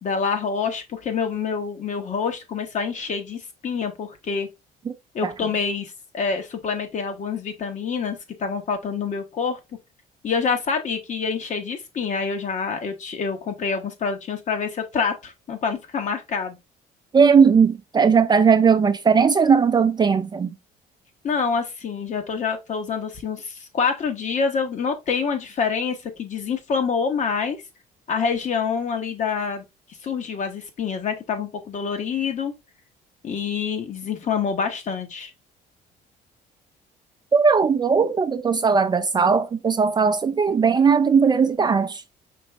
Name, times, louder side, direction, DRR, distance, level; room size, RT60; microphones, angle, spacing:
voice 1, 0.0-4.5 5.1-9.6 10.2-16.6 21.2-27.6 28.1-29.6 30.0-32.5 33.2-35.3, left 5 dB, 45° left, 1.1 m, -26 dB
voice 2, 17.1-20.6 37.3-42.0, right 6 dB, 25° right, 0.4 m, -18 dB
5.2 x 3.0 x 3.4 m
cardioid pair, 110°, 17 cm